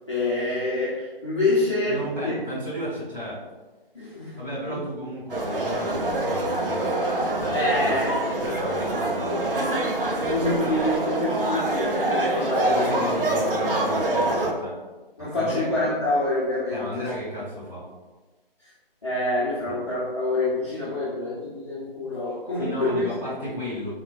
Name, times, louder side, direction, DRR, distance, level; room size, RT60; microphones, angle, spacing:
voice 1, 0.1-2.4 3.9-4.4 4.7-4.8 7.5-8.2 10.3-13.0 15.2-17.1 19.0-23.0, left 2 dB, 30° left, -10 dB, 0.6 m, -26 dB
voice 2, 1.9-3.4 4.4-7.0 7.4-8.0 8.4-9.7 10.0-10.4 12.6-14.8 15.2-15.7 16.7-17.9 19.7-19.8 22.6-23.9, equal, 20° right, -12 dB, 1.2 m, -34 dB
sound 1, 5.3-14.5, right 1 dB, 65° right, 0.6 m, -25 dB
3.9 x 2.1 x 2.4 m, 1.2 s
figure-of-eight pair, 155°, 29 cm